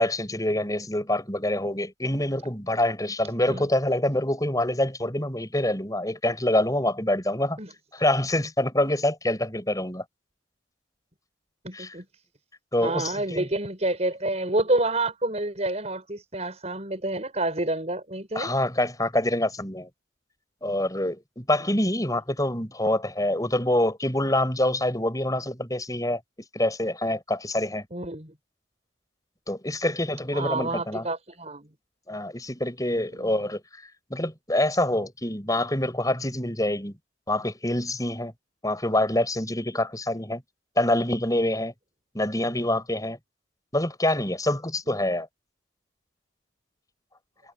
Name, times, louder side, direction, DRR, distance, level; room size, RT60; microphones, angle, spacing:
voice 1, 0.0-7.6 7.9-10.0 11.7-11.9 12.7-13.5 18.3-19.9 20.6-26.2 26.5-27.9 29.5-31.1 32.1-33.8 34.1-37.0 37.3-38.3 38.6-40.4 40.8-41.7 42.1-43.2 43.7-45.3, left 1 dB, 20° left, 7.7 m, -26 dB
voice 2, 11.6-12.0 12.8-18.5 21.7-21.8 27.9-28.3 30.3-31.7 33.1-33.3, right 2 dB, 35° right, 6.1 m, -28 dB
head